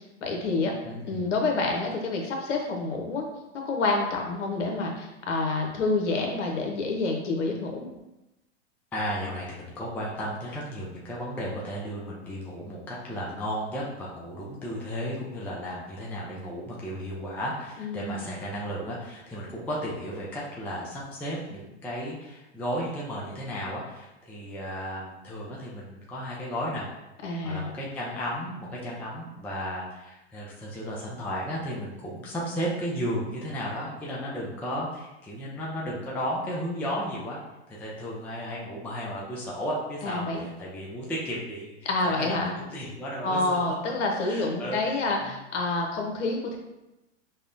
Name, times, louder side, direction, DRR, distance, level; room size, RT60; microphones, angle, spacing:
voice 1, 0.2-0.7 1.0-3.3 3.5-7.9 17.8-18.3 27.2-27.7 40.0-40.5 41.8-42.6 43.2-46.6, left 3 dB, 80° left, 1 dB, 0.8 m, -28 dB
voice 2, 0.8-1.3 8.9-26.9 27.4-37.4 37.7-43.6 44.2-45.4, equal, 5° left, -5 dB, 0.3 m, -34 dB
5.4 x 2.1 x 2.5 m, 0.96 s
hypercardioid pair, 115°, 36 cm